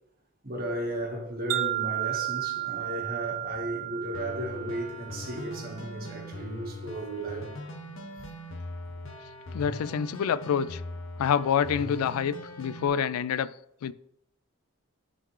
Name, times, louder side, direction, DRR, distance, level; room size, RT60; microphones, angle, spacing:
voice 1, 0.4-7.6, right 1 dB, 40° right, 1.4 m, -35 dB
Wind chime, 1.5-5.8, right 16 dB, 65° right, 0.4 m, -33 dB
sound 1, 4.1-12.9, left 1 dB, 60° left, 0.7 m, -41 dB
voice 2, 9.5-10.8 11.2-13.5 13.8-13.9, left 7 dB, 80° left, 0.3 m, -27 dB
11.0 x 3.9 x 3.2 m
head